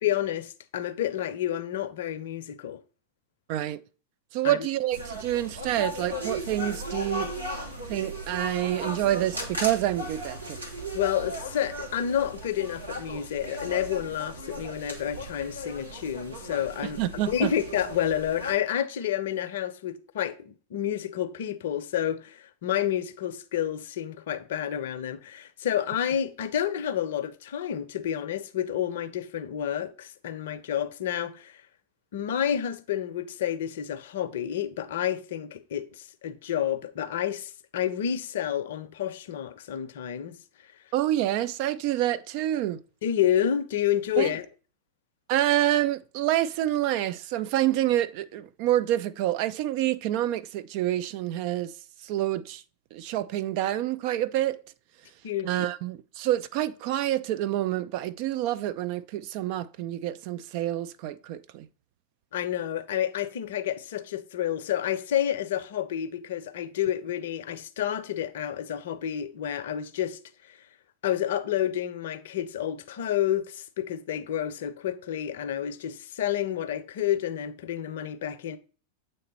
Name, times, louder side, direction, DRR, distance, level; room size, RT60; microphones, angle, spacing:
voice 1, 0.0-2.8 4.4-4.7 10.9-31.6 32.1-40.4 43.0-44.5 55.2-55.7 62.3-70.2 70.5-70.6 71.0-78.6, left 10 dB, 55° left, 0.5 m, -29 dB
voice 2, 3.5-3.8 4.3-7.3 7.9-10.6 17.0-17.5 40.9-42.8 44.2-44.3 45.3-51.7 52.0-52.6 52.9-54.6 55.4-61.7, right 13 dB, 45° right, 0.4 m, -27 dB
sound 1, 4.9-18.5, right 1 dB, 80° right, 1.3 m, -37 dB
7.7 x 3.2 x 4.2 m
figure-of-eight pair, 90°, 0 cm